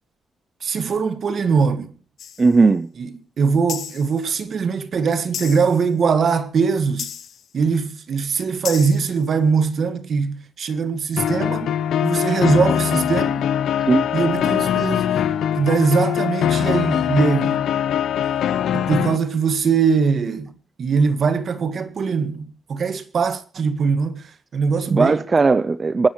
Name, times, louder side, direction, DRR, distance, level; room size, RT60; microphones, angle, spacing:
voice 1, 0.6-1.9 3.0-7.1 7.5-11.7 12.0-13.5 14.1-15.3 15.6-17.6 18.7-25.2, right 5 dB, 55° right, 1.7 m, -21 dB
sound 1, 2.2-2.6 3.7-4.2 5.3-5.9 7.0-7.5 8.6-9.2, left 8 dB, 65° left, 1.1 m, -33 dB
voice 2, 2.4-2.9 13.9-14.1 24.9-26.1, right 4 dB, 30° right, 0.6 m, -17 dB
sound 2, 11.2-19.2, left 9 dB, 80° left, 0.8 m, -22 dB
26.5 x 10.5 x 3.1 m
cardioid pair, 95°, 0 cm